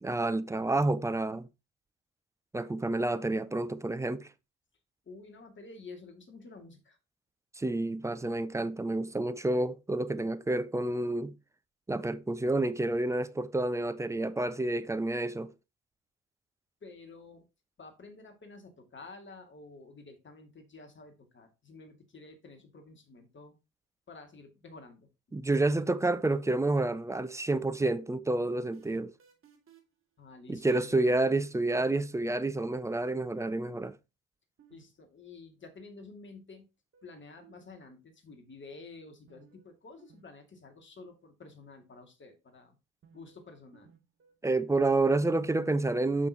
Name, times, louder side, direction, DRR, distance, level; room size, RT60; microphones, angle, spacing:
voice 1, 0.0-1.5 2.5-4.3 7.6-11.3 11.9-15.5 25.3-29.1 30.5-33.9 44.4-46.3, right 2 dB, 10° right, 0.5 m, -29 dB
voice 2, 5.1-7.0 16.8-17.5 17.8-23.5 24.1-25.1 30.2-31.0 34.7-36.7 37.0-42.8 43.1-43.9, left 3 dB, 30° left, 2.3 m, -50 dB
sound 1, 28.4-30.0 31.8-32.2 34.6-34.8 35.1-35.2 36.9-37.7 39.3-39.7 40.0-40.2 40.5-40.6 43.0-43.4 43.7-44.8, right 8 dB, 30° right, 2.4 m, -60 dB
8.3 x 6.2 x 2.9 m
figure-of-eight pair, 60°, 40 cm